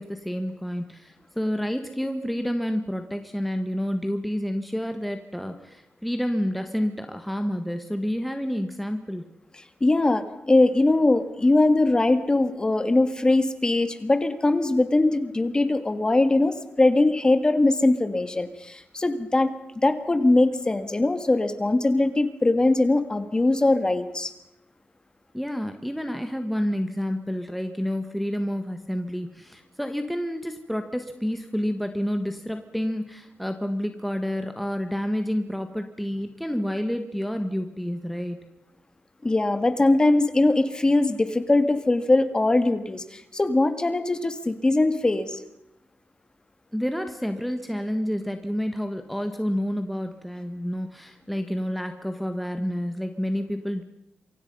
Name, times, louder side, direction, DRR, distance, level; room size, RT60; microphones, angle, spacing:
voice 1, 0.0-9.3 25.3-38.4 46.7-53.8, equal, ahead, 6 dB, 1.6 m, -29 dB
voice 2, 9.8-19.5 19.8-24.3 39.2-45.4, left 2 dB, 20° left, 10 dB, 1.9 m, -21 dB
28.0 x 24.5 x 5.5 m, 0.81 s
wide cardioid pair, 120°, 4 cm